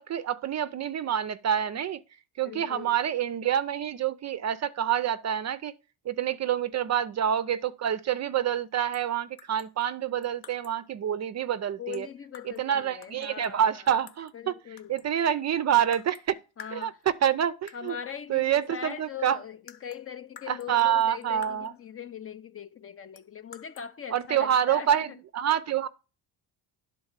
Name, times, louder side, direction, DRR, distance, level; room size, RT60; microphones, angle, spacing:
voice 1, 0.0-2.0 2.4-5.7 6.1-12.1 12.5-16.4 16.7-18.0 18.3-19.4 20.5-21.7 24.1-25.9, right 9 dB, 35° right, 0.5 m, -27 dB
voice 2, 2.4-3.0 11.8-13.9 14.3-14.9 16.6-17.0 17.7-25.2, left 8 dB, 30° left, 0.5 m, -41 dB
sound 1, 8.9-9.1 9.4-10.9 11.9-12.7 13.0-14.4 14.8-15.3 15.9-16.3 16.6-17.3 17.7-18.0 18.9-19.0 19.3-21.9 23.2-23.9, left 8 dB, 50° left, 1.0 m, -51 dB
11.0 x 4.0 x 7.2 m
cardioid pair, 135°, 47 cm